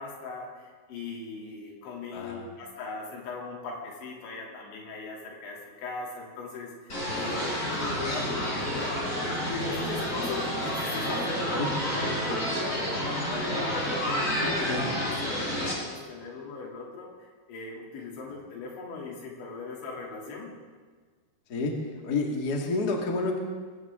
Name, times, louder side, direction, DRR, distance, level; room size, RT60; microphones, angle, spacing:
voice 1, 0.0-20.5, left 3 dB, 90° left, -2 dB, 5.3 m, -39 dB
voice 2, 2.1-2.5 11.6-11.7 14.7-14.8 21.5-23.4, left 3 dB, 35° left, 1 dB, 1.6 m, -30 dB
sound 1, 6.9-15.7, equal, 20° left, 4.0 m, -29 dB
22.0 x 17.0 x 3.7 m, 1.5 s
omnidirectional pair, 5.1 m